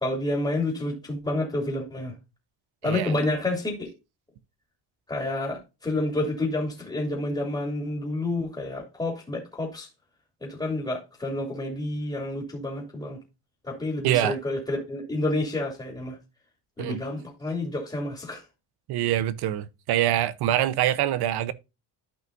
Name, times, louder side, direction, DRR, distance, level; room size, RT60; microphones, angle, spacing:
voice 1, 0.0-2.1 2.8-3.9 5.1-9.9 10.4-13.2 13.6-16.2 16.8-18.4, left 2 dB, 10° left, 2.7 m, -29 dB
voice 2, 2.8-3.1 14.0-14.4 16.8-17.0 18.9-21.5, right 12 dB, 75° right, 0.9 m, -25 dB
13.0 x 5.4 x 2.6 m
cardioid pair, 145°, 39 cm